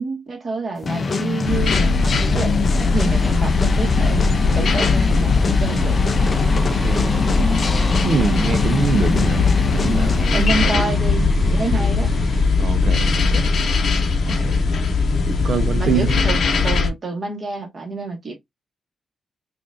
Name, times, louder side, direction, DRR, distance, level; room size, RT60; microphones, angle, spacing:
voice 1, 0.0-6.0 10.3-12.1 15.8-18.3, right 3 dB, 35° right, 1.5 m, -28 dB
sound 1, 0.8-10.5, left 4 dB, 35° left, 0.4 m, -25 dB
sound 2, 1.4-16.9, left 4 dB, 60° left, 0.8 m, -19 dB
sound 3, 2.9-12.4, right 1 dB, 10° right, 1.0 m, -29 dB
voice 2, 7.7-11.0 12.6-13.5 14.3-14.7 15.3-16.3, right 5 dB, 55° right, 0.6 m, -25 dB
5.1 x 2.5 x 2.5 m
wide cardioid pair, 140°, 0 cm